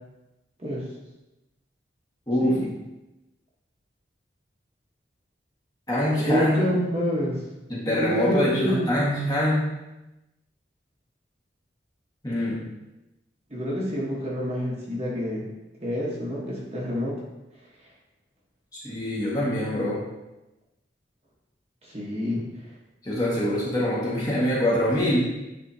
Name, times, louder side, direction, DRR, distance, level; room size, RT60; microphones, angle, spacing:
voice 1, 2.3-2.6 5.9-6.6 7.7-9.7 12.2-12.6 18.7-20.0 23.0-25.3, left 1 dB, 20° left, -7 dB, 1.6 m, -24 dB
voice 2, 6.2-7.4 7.8-8.9 13.5-15.5 15.8-17.1 21.9-22.4, equal, 35° right, -4 dB, 1.2 m, -27 dB
9.8 x 3.6 x 2.8 m, 0.99 s
head